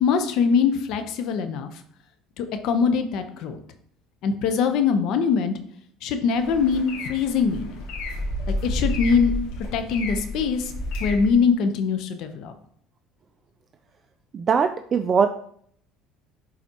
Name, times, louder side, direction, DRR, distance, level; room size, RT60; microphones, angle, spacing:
voice 1, 0.0-1.7 2.4-3.6 4.2-5.5 6.0-7.8 8.5-9.3 9.7-10.7 11.0-12.5, left 6 dB, 65° left, 8 dB, 0.8 m, -22 dB
sound 1, 6.3-11.3, left 1 dB, 80° left, 2.0 m, -30 dB
voice 2, 14.3-15.3, right 6 dB, 35° right, 8 dB, 0.4 m, -21 dB
10.5 x 4.0 x 2.9 m, 0.64 s
cardioid pair, 115°, 0 cm